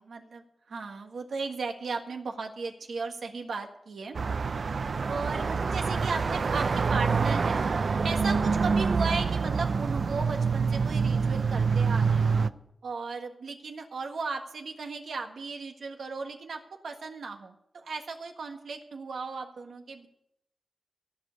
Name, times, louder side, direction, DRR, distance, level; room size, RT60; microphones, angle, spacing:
voice 1, 0.0-4.2 5.1-7.6 8.0-12.5 12.8-20.1, right 4 dB, 80° right, 4 dB, 1.5 m, -36 dB
sound 1, 4.2-12.5, right 5 dB, 60° right, 0.5 m, -26 dB
14.5 x 5.3 x 9.4 m, 0.78 s
wide cardioid pair, 95°, 0 cm